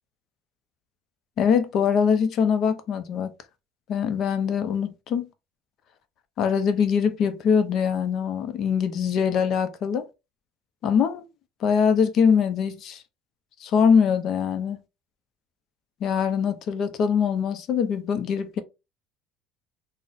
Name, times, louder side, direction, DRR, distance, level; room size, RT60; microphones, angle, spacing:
voice 1, 1.4-3.3 3.9-5.3 6.4-10.1 10.8-11.2 11.6-13.0 13.6-14.8 16.0-18.6, left 6 dB, 50° left, 0.5 m, -23 dB
3.9 x 2.0 x 2.5 m
cardioid pair, 125°, 0 cm